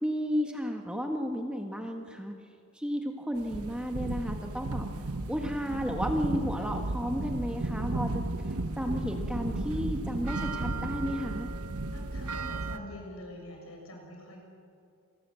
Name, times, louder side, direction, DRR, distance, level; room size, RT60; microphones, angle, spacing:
voice 1, 0.0-2.3 2.7-4.9 5.3-11.5, equal, 5° right, 3 dB, 1.3 m, -33 dB
sound 1, 3.4-12.8, right 2 dB, 85° right, 1.1 m, -34 dB
voice 2, 11.9-14.4, left 1 dB, 70° left, 1 dB, 6.8 m, -45 dB
28.0 x 19.5 x 7.7 m, 2.4 s
head